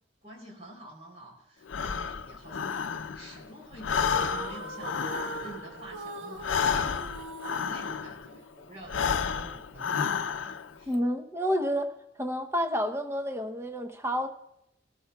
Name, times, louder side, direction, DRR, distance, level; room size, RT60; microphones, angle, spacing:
voice 1, 0.2-7.0 7.6-10.9, right 1 dB, 35° right, -2 dB, 3.5 m, -48 dB
Breathing, 1.7-3.4 3.7-8.3 8.8-10.7, left 6 dB, 85° left, 0.5 m, -31 dB
sound 1, 4.0-8.9, right 3 dB, 90° right, 1.0 m, -41 dB
voice 2, 10.9-11.9 12.2-14.3, equal, 15° right, 6 dB, 0.8 m, -29 dB
22.0 x 13.5 x 2.3 m, 0.82 s
head